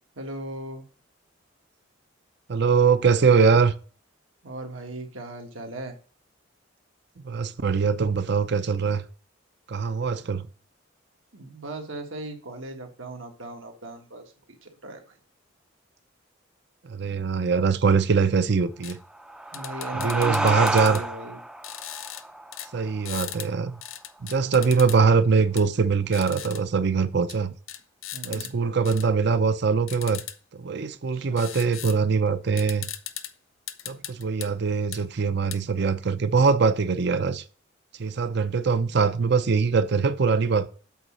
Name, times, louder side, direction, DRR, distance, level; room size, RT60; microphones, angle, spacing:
voice 1, 0.1-0.8 4.4-6.0 11.3-15.1 19.5-21.4 24.2-24.5 28.1-28.6 30.7-31.4, right 2 dB, 80° right, 1.6 m, -38 dB
voice 2, 2.5-3.7 7.2-9.0 9.7-10.5 16.8-19.0 19.9-21.0 22.7-23.8 24.2-27.5 28.2-30.2 30.5-32.9 33.9-37.4 38.0-40.7, right 5 dB, 55° right, 0.6 m, -22 dB
sound 1, 18.8-19.0 19.5-21.0 21.6-22.2 22.5-22.7 23.1-23.5 23.8-25.0 25.6-25.7 26.1-26.6 27.3-27.4 27.7-28.5 28.9-29.1 29.9-30.4 31.4-32.0 32.3-32.4 32.6-33.3 33.7-34.5 34.9-35.0 35.5-35.6, left 12 dB, 80° left, 0.7 m, -37 dB
sound 2, 19.0-24.2, right 1 dB, 5° right, 0.4 m, -31 dB
8.1 x 4.2 x 6.2 m
head